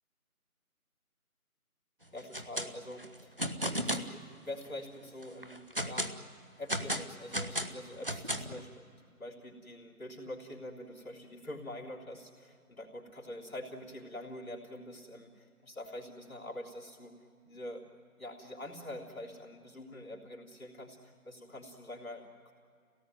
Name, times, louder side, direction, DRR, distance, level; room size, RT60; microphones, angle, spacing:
voice 1, 2.1-3.4 3.8-6.1 6.6-17.2 17.4-17.8 18.2-22.5, left 1 dB, 70° left, -4 dB, 3.4 m, -45 dB
sound 1, 2.2-2.7 3.0-4.1 4.6-4.7 5.2-6.2 6.7-8.6, equal, 40° right, 0.9 m, -34 dB
26.0 x 18.0 x 9.2 m, 2.3 s
figure-of-eight pair, 175°, 44 cm